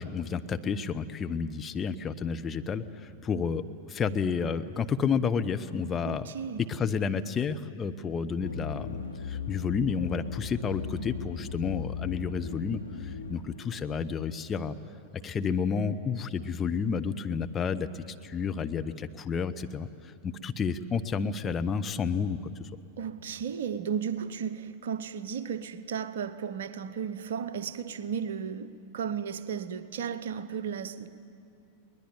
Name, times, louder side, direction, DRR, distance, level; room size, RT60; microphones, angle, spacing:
voice 1, 0.0-6.3 6.6-14.7 15.1-22.7, left 6 dB, 20° left, 0.8 m, -31 dB
voice 2, 6.0-6.6 23.0-31.1, right 7 dB, 60° right, 0.9 m, -34 dB
sound 1, 8.4-13.9, left 5 dB, 80° left, 1.0 m, -38 dB
22.0 x 20.0 x 9.2 m
figure-of-eight pair, 90°, 0 cm